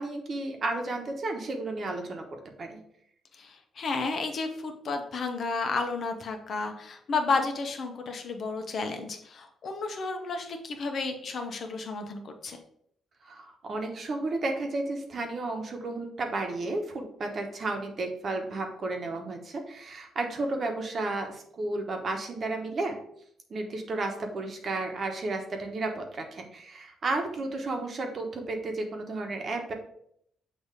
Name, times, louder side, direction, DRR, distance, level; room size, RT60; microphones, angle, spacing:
voice 1, 0.0-2.2 2.6-2.8 13.2-23.0 23.5-29.7, right 2 dB, 45° right, 3 dB, 1.1 m, -32 dB
voice 2, 3.3-12.6, left 4 dB, 55° left, 5 dB, 0.9 m, -32 dB
6.7 x 2.8 x 5.0 m, 0.70 s
cardioid pair, 90°, 0 cm